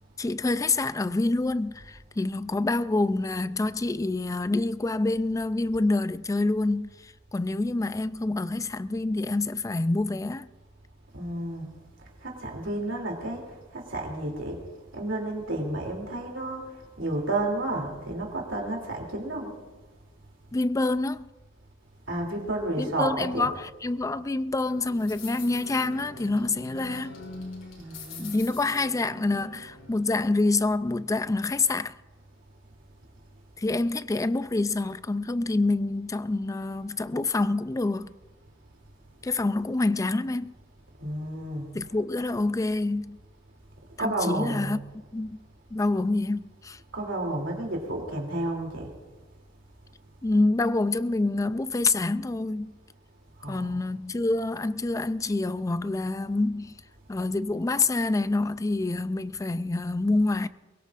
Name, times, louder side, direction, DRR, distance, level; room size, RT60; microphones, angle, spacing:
voice 1, 0.2-10.5 20.5-21.3 22.8-27.1 28.2-31.9 33.6-38.1 39.2-40.5 41.7-43.2 44.0-44.8 45.1-45.4 45.7-46.8 50.2-52.7 53.5-56.7 57.1-60.5, left 2 dB, 15° left, 0.4 m, -27 dB
voice 2, 11.1-11.7 12.0-14.6 14.9-19.6 22.1-23.5 27.8-28.3 41.0-42.0 44.0-44.8 46.9-48.9 53.4-53.8, right 2 dB, 75° right, 2.9 m, -31 dB
sound 1, 24.7-30.5, left 2 dB, 85° left, 5.3 m, -43 dB
23.0 x 20.0 x 2.5 m
head